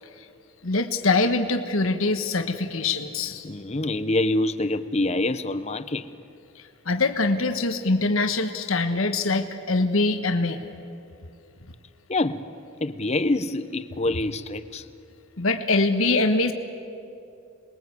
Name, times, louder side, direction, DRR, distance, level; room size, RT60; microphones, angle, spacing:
voice 1, 0.6-3.4 6.5-10.6 15.4-16.5, left 3 dB, 75° left, 7 dB, 1.3 m, -23 dB
voice 2, 3.4-6.1 12.1-12.5 12.8-14.9, left 2 dB, 30° left, 12 dB, 0.8 m, -26 dB
27.5 x 21.5 x 8.2 m, 2.6 s
head